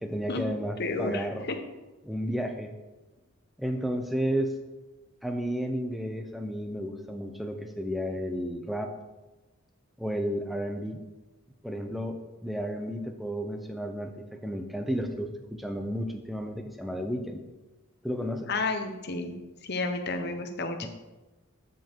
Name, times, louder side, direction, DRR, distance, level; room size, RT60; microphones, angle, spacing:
voice 1, 0.0-1.5 2.0-2.7 3.6-4.6 5.2-8.9 10.0-11.0 11.6-17.4 18.0-18.5 20.8-20.9, equal, ahead, 5 dB, 0.8 m, -32 dB
voice 2, 0.8-1.6 18.5-19.3 19.6-20.9, left 3 dB, 45° left, 6 dB, 1.0 m, -31 dB
13.5 x 5.3 x 4.6 m, 1.1 s
head